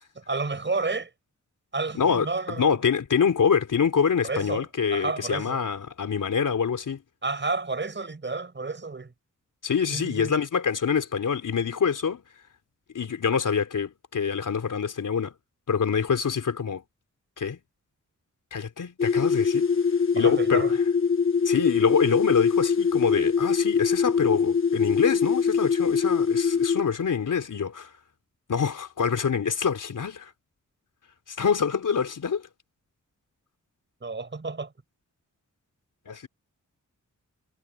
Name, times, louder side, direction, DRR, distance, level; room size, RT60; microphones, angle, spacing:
voice 1, 0.1-1.1 1.7-2.8 4.2-5.6 7.2-9.1 9.9-10.4 20.1-20.7 34.0-34.7, right 3 dB, 35° right, 6.5 m, -31 dB
voice 2, 1.9-7.0 9.6-12.2 12.9-15.3 15.7-16.8 17.4-17.6 18.5-19.7 20.1-20.8 21.4-27.9 28.5-30.3 31.3-32.4 36.1-36.3, left 6 dB, 75° left, 3.7 m, -25 dB
sound 1, 19.0-26.8, left 6 dB, 40° left, 1.4 m, -23 dB
wide cardioid pair, 95°, 31 cm